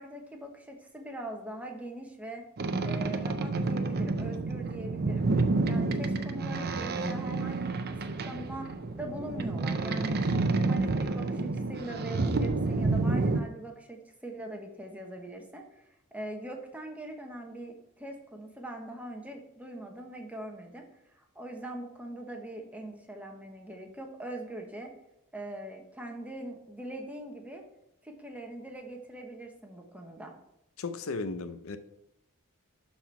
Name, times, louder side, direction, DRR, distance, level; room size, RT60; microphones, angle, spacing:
voice 1, 0.0-2.5 2.8-5.3 5.7-8.0 8.2-10.2 10.6-15.9 16.1-20.9 21.2-24.9 25.3-27.6 28.0-30.3, right 1 dB, 5° right, 1.2 m, -42 dB
Boat Water vehicle, 2.6-13.4, right 3 dB, 45° right, 0.7 m, -29 dB
voice 2, 30.8-31.8, left 3 dB, 70° left, 0.6 m, -35 dB
11.5 x 4.4 x 4.7 m
head